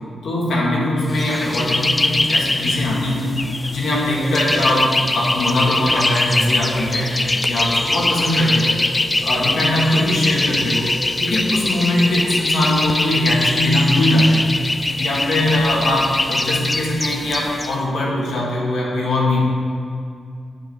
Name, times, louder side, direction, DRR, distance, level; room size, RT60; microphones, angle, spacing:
voice 1, 0.2-3.3 3.7-7.2 7.5-8.8 9.2-10.9 11.2-14.5 15.0-19.4, left 1 dB, 75° left, -4 dB, 2.0 m, -20 dB
sound 1, 1.1-17.7, left 2 dB, 20° left, 0.4 m, -22 dB
7.5 x 4.7 x 7.0 m, 2.3 s
cardioid pair, 85°, 0 cm